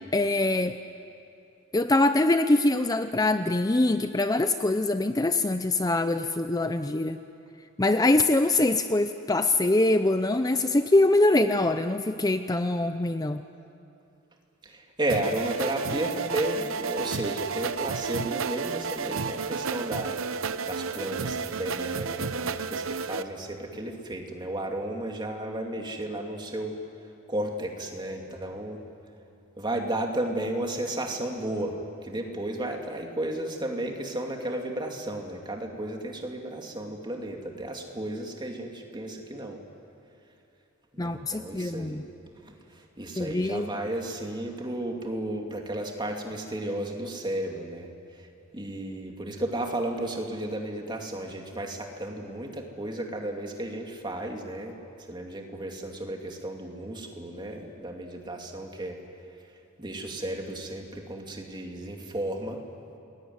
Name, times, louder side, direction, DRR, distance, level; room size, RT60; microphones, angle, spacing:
voice 1, 0.1-0.8 1.7-7.2 7.8-13.4 41.0-42.0 43.2-43.8, left 2 dB, 20° left, 9 dB, 0.6 m, -24 dB
voice 2, 14.6-26.7 27.3-28.8 29.6-39.6 40.9-42.0 42.4-59.0 59.8-62.6, right 1 dB, 20° right, 2 dB, 2.8 m, -33 dB
sound 1, 15.1-23.2, right 5 dB, 85° right, 0.8 m, -32 dB
28.5 x 21.0 x 9.6 m, 2.6 s
head